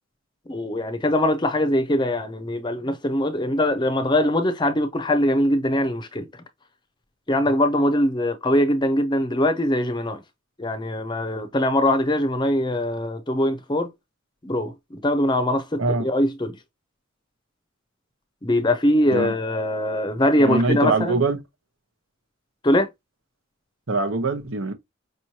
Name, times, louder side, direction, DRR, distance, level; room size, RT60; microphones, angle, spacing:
voice 1, 0.5-6.3 7.3-10.2 10.6-13.9 14.4-16.6 18.4-21.2 22.6-22.9, left 1 dB, 20° left, 0.6 m, -22 dB
voice 2, 20.4-21.4 23.9-24.7, right 3 dB, 75° right, 1.0 m, -23 dB
5.2 x 3.0 x 2.8 m
head